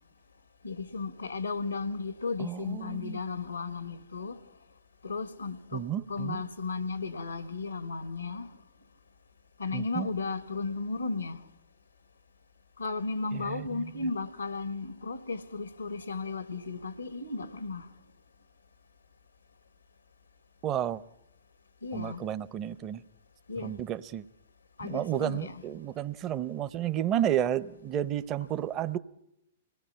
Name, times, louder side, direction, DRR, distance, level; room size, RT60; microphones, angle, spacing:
voice 1, 0.6-4.4 5.0-5.8 6.1-8.5 9.6-11.4 12.8-17.9 21.8-22.2 23.5-23.7 24.8-25.6, left 4 dB, 80° left, 1.3 m, -35 dB
voice 2, 2.4-3.2 5.7-6.4 9.7-10.1 13.3-13.9 20.6-21.0 21.9-23.0 23.6-24.3 24.8-29.0, right 11 dB, 30° right, 0.8 m, -32 dB
26.0 x 18.5 x 5.7 m
figure-of-eight pair, 110°, 0 cm